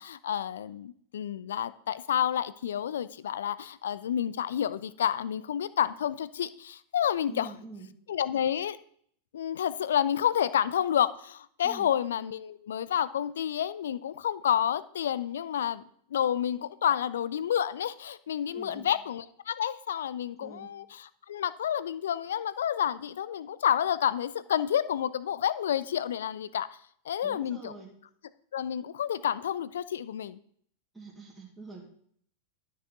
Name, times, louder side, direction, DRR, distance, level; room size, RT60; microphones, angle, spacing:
voice 1, 0.0-7.5 8.1-8.8 9.3-15.8 16.1-26.7 27.1-27.7 28.5-30.4, left 9 dB, 60° left, 16 dB, 0.4 m, -29 dB
voice 2, 7.3-8.0 11.6-11.9 18.5-18.9 20.4-20.7 27.2-27.9 30.9-31.8, right 3 dB, ahead, -7 dB, 2.2 m, -46 dB
12.5 x 4.8 x 3.6 m, 0.63 s
figure-of-eight pair, 90°, 0 cm